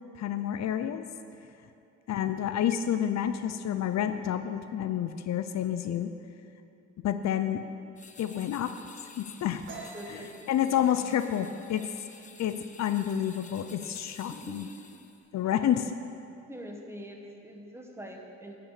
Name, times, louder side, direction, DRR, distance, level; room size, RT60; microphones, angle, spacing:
voice 1, 0.2-1.1 2.1-6.1 7.0-7.6 8.2-8.7 9.2-9.7 10.1-10.2 10.5-11.8 12.4-14.7 15.3-15.9, left 10 dB, 65° left, 10 dB, 0.5 m, -29 dB
sound 1, 8.0-15.3, left 4 dB, 25° left, 0.7 m, -52 dB
sound 2, 9.7-13.1 13.4-13.8 14.1-14.7 14.9-15.7, right 4 dB, 40° right, 2.6 m, -48 dB
voice 2, 9.9-10.7 14.3-15.0 15.5-15.7 16.5-18.7, equal, 10° right, 1 dB, 1.4 m, -44 dB
11.5 x 6.0 x 8.4 m, 2.7 s
cardioid pair, 110°, 30 cm